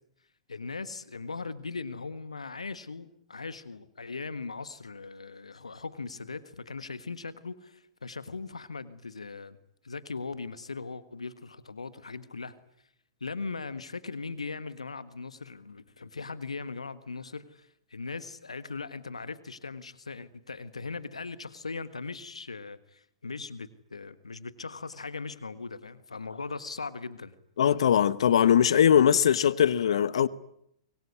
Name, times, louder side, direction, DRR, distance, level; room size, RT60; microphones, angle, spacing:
voice 1, 0.5-9.6 9.8-12.5 13.2-27.3, left 4 dB, 85° left, 1.5 m, -39 dB
voice 2, 27.6-30.3, left 9 dB, 65° left, 1.1 m, -21 dB
25.5 x 23.0 x 9.7 m
figure-of-eight pair, 105°, 3 cm